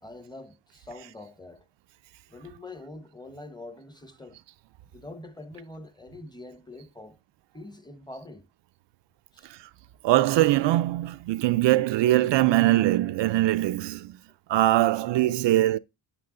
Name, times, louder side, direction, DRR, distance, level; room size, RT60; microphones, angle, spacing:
voice 1, 0.0-1.7 2.3-4.4 4.9-7.2 7.5-8.5 9.3-9.5, left 2 dB, 10° left, 0.9 m, -44 dB
voice 2, 10.0-14.2 14.5-15.8, right 15 dB, 70° right, 0.5 m, -22 dB
9.0 x 6.1 x 3.7 m
cardioid pair, 120°, 45 cm